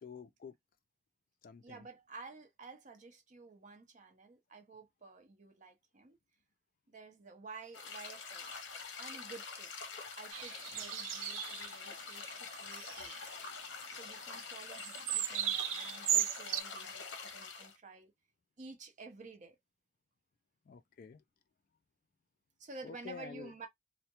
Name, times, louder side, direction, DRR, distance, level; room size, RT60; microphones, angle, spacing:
voice 1, 0.0-0.6 1.4-1.8 20.7-21.2 22.8-23.5, left 6 dB, 50° left, 0.3 m, -49 dB
voice 2, 1.6-6.2 6.9-8.5 9.0-9.7 10.2-13.3 13.9-18.1 18.6-19.6 22.6-23.7, right 3 dB, 40° right, 0.6 m, -52 dB
sound 1, 7.7-17.8, left 5 dB, 70° left, 0.7 m, -46 dB
sound 2, 10.3-11.7 12.1-12.3 12.6-13.2 14.7-16.6, right 11 dB, 85° right, 0.3 m, -36 dB
2.2 x 2.1 x 2.8 m
head